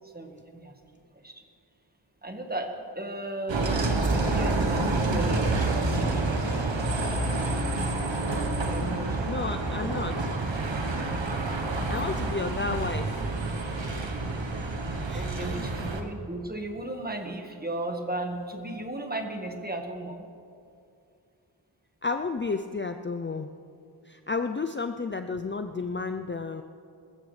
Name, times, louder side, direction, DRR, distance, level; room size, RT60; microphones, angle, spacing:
voice 1, 0.0-0.8 1.1-1.4 2.2-6.6 8.7-9.3 15.1-20.3, right 1 dB, 20° right, 4 dB, 1.5 m, -36 dB
Bus, 3.5-16.0, right 2 dB, 75° right, 1.2 m, -28 dB
voice 2, 9.2-10.3 11.9-13.2 15.1-15.5 22.0-23.5 24.1-26.6, left 4 dB, 25° left, 7 dB, 0.5 m, -32 dB
21.5 x 13.5 x 3.3 m, 2.5 s
wide cardioid pair, 55°, 45 cm